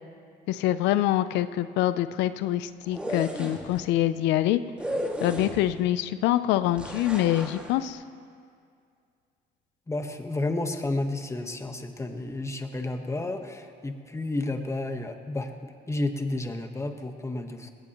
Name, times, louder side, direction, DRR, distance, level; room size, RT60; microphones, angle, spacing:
voice 1, 0.5-4.6 5.2-8.0, left 13 dB, 90° left, 13 dB, 0.5 m, -25 dB
sound 1, 2.8-3.8 4.8-5.9 6.8-7.7, equal, 5° right, 2.1 m, -34 dB
voice 2, 9.9-17.7, left 2 dB, 15° left, 6 dB, 1.2 m, -31 dB
20.0 x 16.5 x 3.0 m, 2.3 s
cardioid pair, 95°, 18 cm